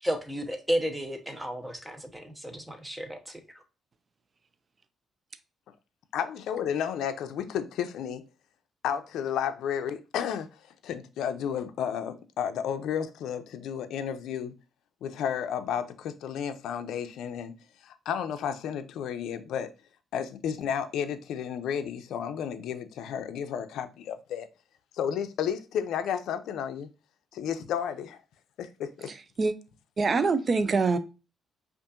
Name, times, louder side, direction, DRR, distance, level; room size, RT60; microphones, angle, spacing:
voice 1, 0.0-3.4, equal, 10° right, 0.9 m, -32 dB
voice 2, 6.1-8.2 8.8-14.5 15.0-17.6 17.8-19.7 20.1-24.5 24.9-26.9 27.3-28.2 28.6-29.1, left 8 dB, 80° left, 0.4 m, -32 dB
voice 3, 29.1-29.6 30.0-31.0, right 4 dB, 40° right, 0.5 m, -25 dB
5.2 x 2.5 x 2.4 m
cardioid pair, 90°, 0 cm